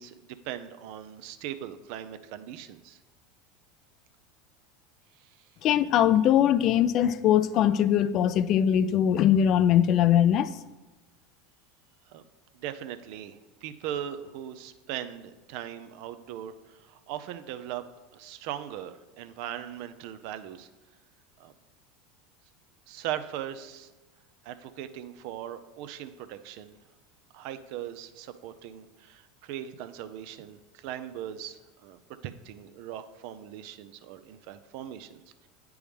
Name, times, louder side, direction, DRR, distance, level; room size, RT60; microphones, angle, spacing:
voice 1, 0.0-3.0 5.1-5.5 12.1-12.2 12.5-17.8 18.1-20.7 21.4-21.5 22.9-23.9 24.4-26.8 27.3-35.5, right 10 dB, 65° right, 11 dB, 0.5 m, -39 dB
voice 2, 5.6-10.5, left 10 dB, 50° left, 15 dB, 0.3 m, -21 dB
8.7 x 4.6 x 3.5 m, 1.1 s
hypercardioid pair, 90°, 0 cm